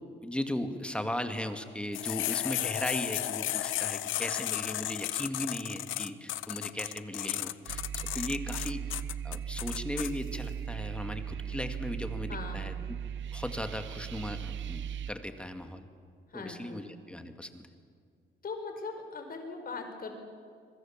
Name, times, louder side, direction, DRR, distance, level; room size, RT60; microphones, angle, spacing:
voice 1, 0.0-7.8 8.1-8.9 9.2-12.7 13.3-15.9 16.3-17.7, left 1 dB, 5° left, 7 dB, 2.1 m, -37 dB
sound 1, 1.9-10.1, left 14 dB, 80° left, 0.7 m, -34 dB
sound 2, 7.7-15.1, right 8 dB, 70° right, 0.9 m, -38 dB
voice 2, 12.3-12.7 16.3-16.8 18.4-20.1, left 4 dB, 45° left, 5 dB, 5.2 m, -40 dB
26.5 x 23.5 x 7.5 m, 2.1 s
cardioid pair, 90°, 20 cm